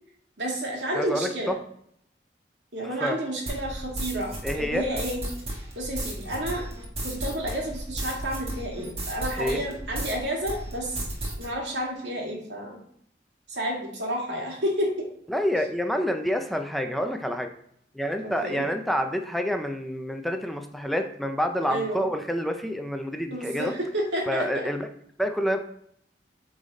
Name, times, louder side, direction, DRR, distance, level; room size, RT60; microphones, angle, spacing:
voice 1, 0.4-1.5 2.7-5.2 5.8-6.6 7.0-11.1 11.4-12.8 13.5-15.1 18.2-18.6 21.7-22.1 23.3-24.6, equal, 85° right, -1 dB, 2.1 m, -30 dB
voice 2, 0.9-1.6 2.8-3.2 4.4-4.8 9.4-9.6 15.3-17.5 17.9-23.7 24.3-24.9 25.2-25.6, equal, ahead, 5 dB, 0.5 m, -28 dB
sound 1, 3.5-10.2 10.5-11.5, right 1 dB, 35° right, 1.5 m, -34 dB
8.2 x 4.0 x 4.0 m, 0.68 s
head